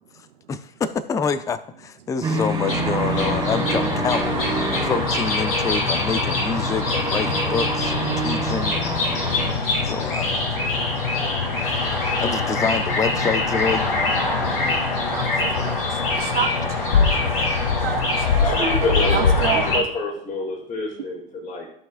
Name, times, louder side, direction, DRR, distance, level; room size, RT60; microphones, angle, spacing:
voice 1, 0.5-8.8 9.7-10.3 12.2-13.9 15.4-15.5, left 5 dB, 10° left, 14 dB, 0.4 m, -27 dB
sound 1, 2.2-9.5, right 4 dB, 15° right, 1.9 m, -28 dB
sound 2, 2.7-19.8, left 3 dB, 70° left, 3.7 m, -23 dB
voice 2, 15.1-16.5 17.6-18.8 19.1-19.8, right 9 dB, 80° right, 2 dB, 0.8 m, -29 dB
voice 3, 18.4-21.7, left 2 dB, 25° left, 1 dB, 2.2 m, -27 dB
14.0 x 5.4 x 2.4 m, 0.65 s
hypercardioid pair, 95°, 29 cm